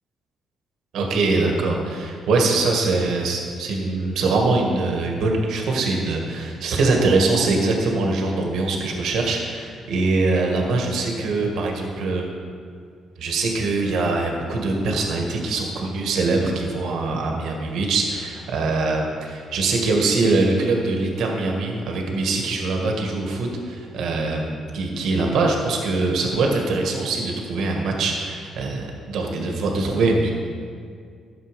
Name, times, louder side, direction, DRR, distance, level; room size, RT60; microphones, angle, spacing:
voice 1, 0.9-12.3 13.2-30.3, right 3 dB, 75° right, 1 dB, 1.8 m, -23 dB
11.5 x 7.5 x 5.3 m, 2.2 s
cardioid pair, 90°, 0 cm